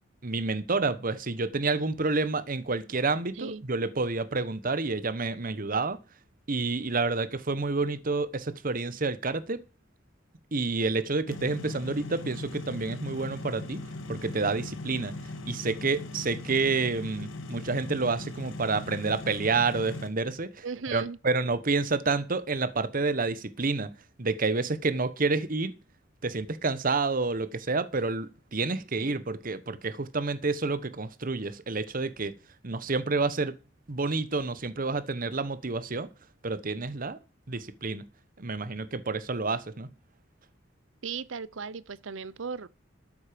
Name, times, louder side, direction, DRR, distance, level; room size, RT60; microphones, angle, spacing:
voice 1, 0.2-6.0 6.5-9.6 10.5-13.8 14.1-15.1 15.5-20.6 20.9-23.9 24.2-25.7 26.2-32.3 32.6-33.5 33.9-36.1 36.4-37.2 37.5-38.0 38.4-39.9, right 3 dB, 45° right, 1.0 m, -29 dB
voice 2, 3.3-3.7 20.6-21.2 29.0-29.2 41.0-42.7, right 5 dB, 80° right, 0.7 m, -37 dB
sound 1, 11.3-20.1, left 2 dB, 80° left, 1.9 m, -39 dB
12.5 x 9.5 x 5.1 m
head